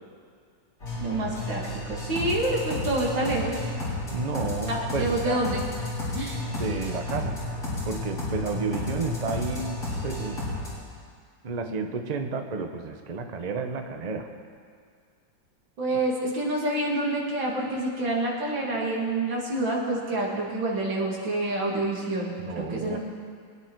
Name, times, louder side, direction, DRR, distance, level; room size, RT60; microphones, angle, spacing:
sound 1, 0.8-10.7, left 2 dB, 55° left, 5.1 m, -32 dB
voice 1, 1.0-3.6 4.7-5.6 6.1-6.4 15.8-23.0, right 2 dB, 75° right, -3 dB, 3.0 m, -28 dB
voice 2, 4.1-5.5 6.5-7.4 7.8-9.7 10.0-10.4 11.4-14.3 22.4-23.0, right 4 dB, 35° right, 5 dB, 0.6 m, -31 dB
23.0 x 10.0 x 4.6 m, 2.2 s
omnidirectional pair, 2.1 m